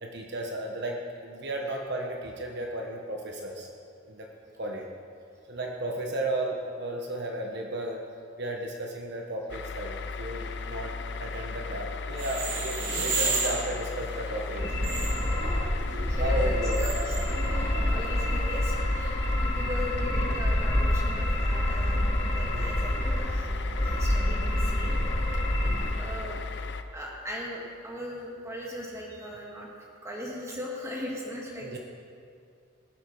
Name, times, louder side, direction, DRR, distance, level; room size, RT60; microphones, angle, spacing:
voice 1, 0.0-3.7 4.1-4.3 4.6-4.9 5.5-8.0 8.4-14.6 16.1-16.9 19.6-19.7 22.5-22.8 25.6-26.0 31.6-31.8, right 1 dB, 60° right, 1 dB, 1.2 m, -34 dB
sound 1, 9.5-26.8, left 4 dB, 60° left, 0.7 m, -36 dB
sound 2, 12.1-18.6, right 3 dB, 80° right, 2.9 m, -34 dB
sound 3, 14.6-25.9, left 1 dB, 25° left, 1.8 m, -27 dB
voice 2, 15.9-25.0 26.0-26.4 26.9-29.7 30.0-31.8, equal, 15° right, -3 dB, 2.2 m, -39 dB
19.0 x 8.1 x 5.5 m, 2.4 s
head